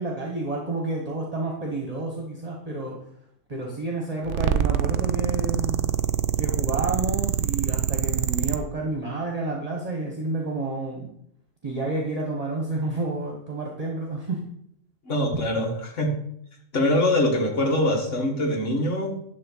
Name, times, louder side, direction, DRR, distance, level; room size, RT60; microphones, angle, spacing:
voice 1, 0.0-3.0 3.5-5.7 6.4-11.1 11.6-14.4, right 2 dB, 30° right, -1 dB, 1.5 m, -30 dB
sound 1, 4.3-8.6, right 11 dB, 75° right, 0.9 m, -25 dB
voice 2, 15.1-16.2 16.7-19.2, left 1 dB, 75° left, 1 dB, 2.0 m, -23 dB
11.0 x 3.7 x 7.4 m, 0.70 s
omnidirectional pair, 1.3 m